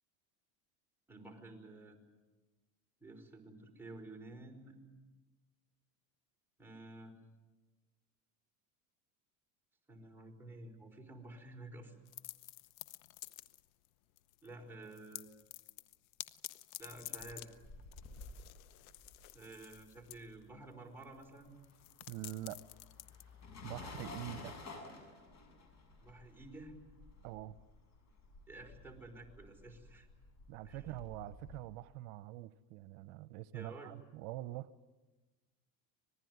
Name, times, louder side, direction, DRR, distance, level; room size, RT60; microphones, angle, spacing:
voice 1, 1.1-2.0 3.0-4.8 6.6-7.1 9.9-11.9 14.4-15.3 16.8-17.5 19.3-21.5 26.0-26.7 28.5-30.1 30.6-30.8 33.5-33.9, right 2 dB, 5° right, 1 dB, 5.1 m, -51 dB
sound 1, 12.1-13.9 14.2-14.5 14.8-23.9, left 17 dB, 90° left, 1.0 m, -51 dB
sound 2, 17.0-20.6 20.9-31.6, left 3 dB, 40° left, 7.0 m, -53 dB
voice 2, 22.1-22.6 23.6-24.6 27.2-27.6 30.5-34.7, right 16 dB, 75° right, 15 dB, 0.9 m, -45 dB
26.0 x 20.0 x 9.5 m, 1.2 s
supercardioid pair, 115°, 40 cm